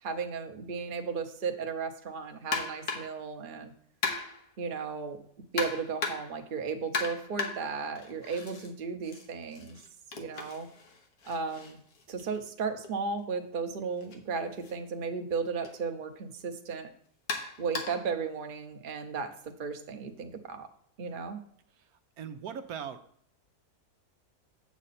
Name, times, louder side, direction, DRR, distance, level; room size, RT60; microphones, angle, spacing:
voice 1, 0.0-3.7 4.6-5.2 5.5-9.8 10.1-10.7 11.2-11.8 12.1-16.9 17.6-20.7 21.0-21.4, right 5 dB, 40° right, 5 dB, 0.9 m, -35 dB
sound 1, 2.5-3.2 4.0-4.5 5.6-6.4 6.9-8.7 9.0-12.9 14.0-14.2 14.6-14.7 15.6-15.8 17.3-18.1, left 4 dB, 80° left, 1.7 m, -36 dB
voice 2, 21.7-23.0, right 7 dB, 80° right, 8 dB, 1.2 m, -41 dB
7.7 x 7.4 x 4.2 m, 0.63 s
omnidirectional pair, 1.6 m